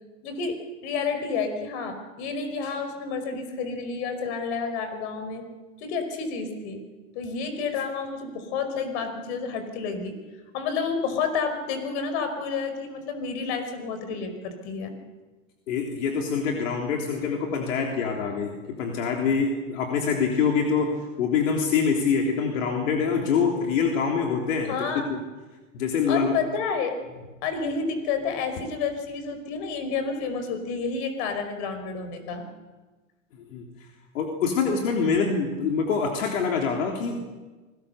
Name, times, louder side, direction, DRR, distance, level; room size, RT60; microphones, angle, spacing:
voice 1, 0.2-5.4 5.8-6.8 7.1-10.2 10.5-14.9 24.7-25.1 26.1-27.0 27.4-32.4, left 5 dB, 55° left, 8 dB, 5.2 m, -30 dB
voice 2, 15.7-24.8 25.1-25.2 25.7-26.4 33.5-33.7 34.1-37.3, left 5 dB, 70° left, 1 dB, 3.6 m, -25 dB
26.0 x 20.5 x 6.8 m, 1.2 s
hypercardioid pair, 125°, 40 cm